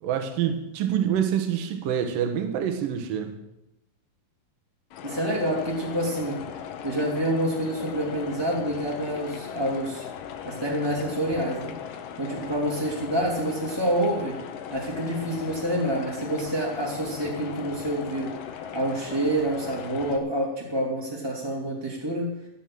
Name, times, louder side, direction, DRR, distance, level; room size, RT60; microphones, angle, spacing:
voice 1, 0.0-3.3, right 9 dB, 75° right, 7 dB, 3.0 m, -26 dB
sound 1, 4.9-20.2, left 8 dB, 70° left, 2.6 m, -38 dB
voice 2, 5.0-6.4 6.8-10.1 10.4-11.7 12.2-14.4 14.7-18.3 18.7-22.3, right 1 dB, 10° right, -4 dB, 2.1 m, -27 dB
14.0 x 9.2 x 7.6 m, 0.90 s
omnidirectional pair, 4.1 m